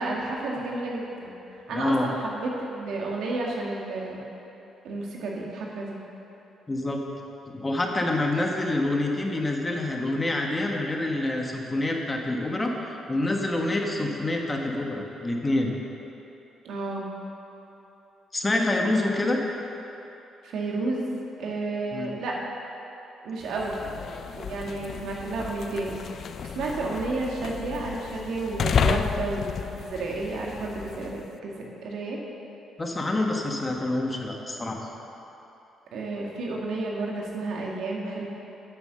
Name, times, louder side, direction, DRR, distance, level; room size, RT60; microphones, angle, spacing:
voice 1, 0.0-4.2 4.8-6.0 13.9-14.2 16.6-17.1 20.4-21.1 21.4-22.4 23.2-23.8 24.3-26.2 26.6-29.5 29.7-32.2 35.9-38.2, right 2 dB, 75° right, -2 dB, 1.8 m, -31 dB
voice 2, 1.7-2.1 6.7-7.0 7.5-15.7 18.3-19.4 21.9-22.1 32.8-34.9, left 2 dB, 20° left, 1 dB, 1.3 m, -27 dB
sound 1, 23.4-31.3, left 7 dB, 55° left, 0.4 m, -32 dB
9.5 x 6.9 x 6.7 m, 3.0 s
cardioid pair, 90°, 0 cm